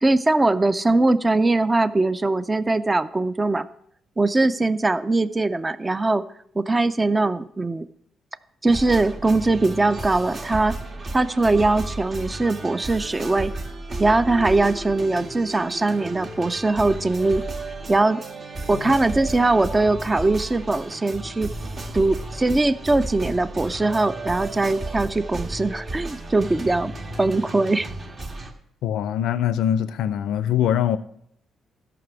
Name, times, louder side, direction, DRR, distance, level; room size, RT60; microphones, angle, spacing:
voice 1, 0.0-3.7 4.2-6.2 6.6-7.9 8.6-10.8 11.1-13.5 14.0-17.4 17.9-18.2 18.7-21.5 21.9-26.9 27.2-27.9, right 2 dB, 20° right, 0.4 m, -21 dB
sound 1, 8.7-28.5, right 2 dB, 45° right, 1.6 m, -33 dB
voice 2, 28.8-31.0, left 10 dB, 90° left, 0.4 m, -23 dB
13.0 x 6.0 x 6.1 m
cardioid pair, 100°, 0 cm